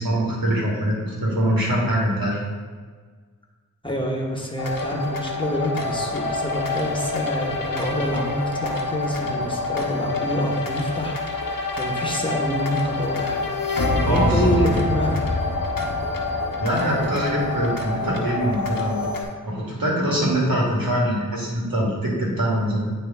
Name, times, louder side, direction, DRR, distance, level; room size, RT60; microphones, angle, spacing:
voice 1, 0.0-2.4 14.0-14.7 16.6-19.0 19.4-22.9, right 1 dB, 90° right, -4 dB, 1.7 m, -23 dB
voice 2, 3.8-11.1 11.4-13.4 14.0-15.2, equal, 15° left, -1 dB, 1.3 m, -26 dB
sound 1, 4.6-19.2, left 2 dB, 80° left, 0.9 m, -26 dB
9.5 x 3.3 x 3.6 m, 1.5 s
cardioid pair, 40°, 33 cm